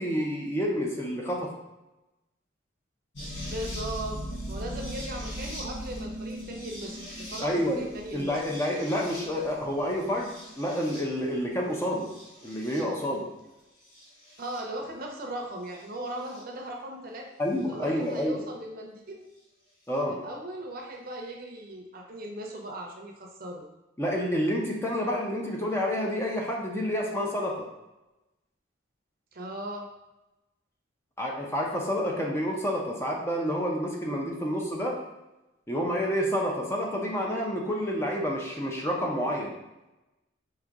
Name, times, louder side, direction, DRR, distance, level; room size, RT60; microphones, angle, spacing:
voice 1, 0.0-1.5 7.4-7.9 8.1-12.1 12.4-13.3 17.4-18.4 19.9-20.2 24.0-27.7 31.2-35.0 35.7-39.5, equal, 15° left, -1 dB, 0.6 m, -29 dB
sound 1, 3.1-11.3 12.0-12.8 14.0-14.6 16.3-16.4 18.1-18.2, equal, 60° left, 1.5 m, -39 dB
voice 2, 3.4-4.2 4.5-8.4 14.4-17.2 17.7-19.2 20.1-23.6 29.3-29.9, right 1 dB, 50° right, 1 dB, 0.7 m, -38 dB
4.9 x 2.8 x 3.6 m, 0.97 s
head